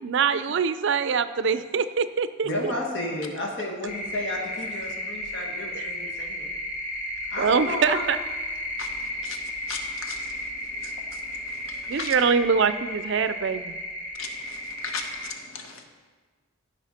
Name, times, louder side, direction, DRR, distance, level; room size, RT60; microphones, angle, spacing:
voice 1, 0.0-2.7 5.7-5.8 7.4-8.2 11.9-13.8, right 6 dB, 60° right, 13 dB, 0.4 m, -24 dB
voice 2, 2.4-6.5 7.3-8.0, left 1 dB, 60° left, -1 dB, 1.8 m, -32 dB
sound 1, 3.9-15.3, left 1 dB, 40° left, 2.1 m, -34 dB
voice 3, 9.7-10.2 12.0-12.1 14.2-14.3 14.8-15.3 15.5-15.7, left 5 dB, 90° left, 5 dB, 1.0 m, -34 dB
15.0 x 5.6 x 4.3 m, 1.4 s
head